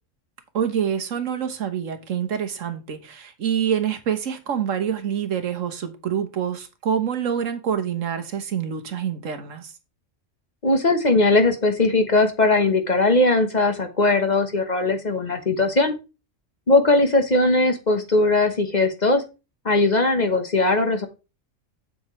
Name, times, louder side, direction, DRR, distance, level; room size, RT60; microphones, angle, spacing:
voice 1, 0.5-9.7, right 8 dB, 80° right, 1.5 m, -26 dB
voice 2, 10.6-15.9 16.7-19.2 19.6-21.1, left 2 dB, 35° left, 1.2 m, -19 dB
7.9 x 7.6 x 3.1 m
omnidirectional pair, 1.3 m